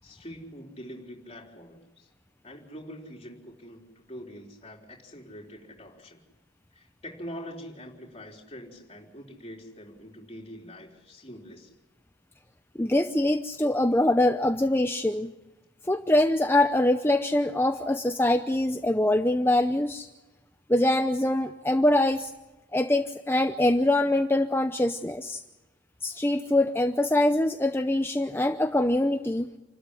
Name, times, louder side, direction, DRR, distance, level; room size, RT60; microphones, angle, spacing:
voice 1, 0.0-2.1 2.4-6.2 6.7-11.7, equal, 30° left, -1 dB, 3.9 m, -44 dB
voice 2, 12.8-15.3 15.9-20.1 20.7-22.3 22.7-25.4 26.0-29.5, left 1 dB, 10° left, 7 dB, 0.7 m, -24 dB
28.5 x 13.0 x 9.9 m, 1.1 s
head